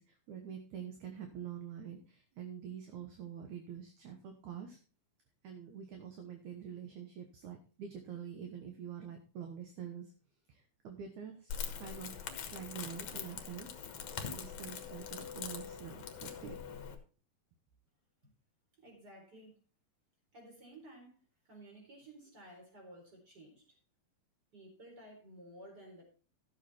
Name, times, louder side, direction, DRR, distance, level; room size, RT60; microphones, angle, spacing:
voice 1, 0.0-4.8 5.4-10.1 10.5-13.7 14.2-16.8, right 8 dB, 65° right, 4 dB, 2.2 m, -46 dB
Crackle, 11.5-16.9, left 7 dB, 60° left, 1.9 m, -43 dB
voice 2, 18.7-19.6 20.3-21.2 21.5-23.7 24.5-26.0, right 1 dB, 25° right, 0 dB, 4.4 m, -54 dB
13.5 x 7.4 x 4.3 m, 0.37 s
omnidirectional pair, 4.4 m